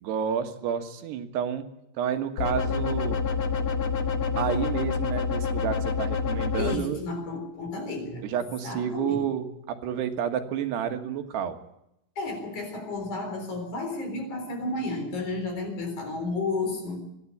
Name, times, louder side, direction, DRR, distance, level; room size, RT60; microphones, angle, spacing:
voice 1, 0.0-1.6 2.0-3.2 4.4-7.0 8.2-11.6, right 8 dB, 85° right, 6 dB, 3.6 m, -30 dB
sound 1, 2.4-6.8, left 5 dB, 70° left, 1.2 m, -27 dB
voice 2, 6.6-8.3 8.6-9.3 12.2-17.0, left 3 dB, 50° left, 5 dB, 5.2 m, -32 dB
28.0 x 11.0 x 8.5 m, 0.82 s
omnidirectional pair, 4.7 m